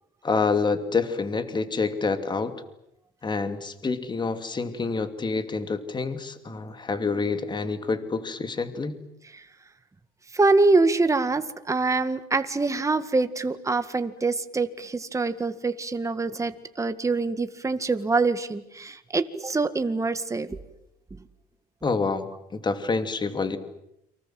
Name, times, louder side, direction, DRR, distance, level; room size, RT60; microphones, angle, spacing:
voice 1, 0.2-2.5 3.2-9.0 21.8-23.6, left 4 dB, 25° left, 9 dB, 2.8 m, -27 dB
voice 2, 10.3-20.6, right 3 dB, 20° right, 9 dB, 1.9 m, -25 dB
30.0 x 25.0 x 7.8 m, 0.83 s
cardioid pair, 110°, 17 cm